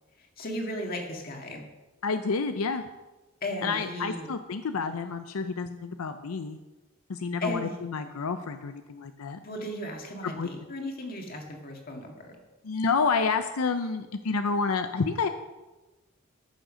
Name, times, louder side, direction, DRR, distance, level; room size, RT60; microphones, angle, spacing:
voice 1, 0.2-1.7 3.4-4.3 7.4-7.8 9.4-12.4, left 1 dB, 40° left, 1 dB, 2.0 m, -36 dB
voice 2, 2.0-2.8 3.6-6.6 7.1-9.4 10.2-10.5 12.6-15.3, left 4 dB, 80° left, 8 dB, 0.6 m, -29 dB
14.0 x 6.4 x 6.2 m, 1.1 s
head